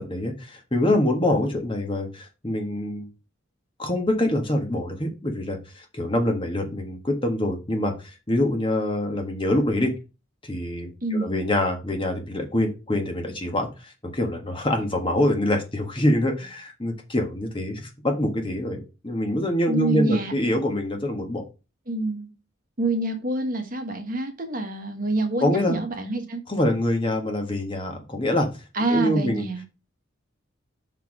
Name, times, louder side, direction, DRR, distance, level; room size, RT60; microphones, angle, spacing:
voice 1, 0.0-3.1 3.8-9.9 10.4-21.4 25.4-25.8 26.5-28.5 28.9-29.4, left 1 dB, 25° left, 3 dB, 1.5 m, -25 dB
voice 2, 11.0-11.5 19.7-20.3 21.9-22.3 22.8-26.4 28.7-29.6, right 2 dB, 40° right, 5 dB, 1.4 m, -26 dB
5.8 x 4.7 x 6.0 m, 0.29 s
head